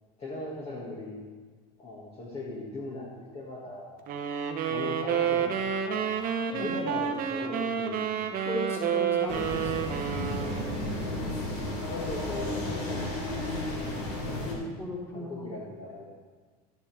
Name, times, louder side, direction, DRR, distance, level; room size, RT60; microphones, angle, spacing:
voice 1, 0.2-1.3 1.8-3.9 4.7-6.2 6.5-8.3 11.4-13.1 13.4-14.0 15.1-16.1, left 2 dB, 30° left, -6 dB, 2.0 m, -39 dB
sound 1, 4.1-10.9, right 7 dB, 45° right, 1.0 m, -30 dB
voice 2, 8.4-10.0 14.8-15.5, equal, 15° left, -5 dB, 3.5 m, -36 dB
sound 2, 9.3-14.5, left 1 dB, 75° left, 3.3 m, -33 dB
12.5 x 9.1 x 3.5 m, 1.5 s
supercardioid pair, 125°, 20 cm